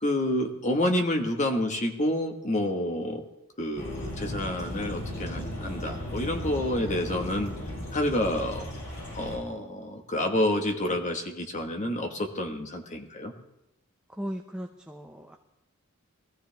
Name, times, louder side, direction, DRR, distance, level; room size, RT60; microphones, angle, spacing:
voice 1, 0.0-3.2 3.6-7.5 7.9-8.6 9.1-13.3, left 1 dB, 35° left, 3 dB, 1.5 m, -28 dB
sound 1, 3.8-9.4, left 1 dB, 80° left, 7.0 m, -36 dB
voice 2, 14.1-15.4, equal, 5° right, 3 dB, 0.7 m, -37 dB
21.5 x 14.5 x 3.5 m, 0.91 s
head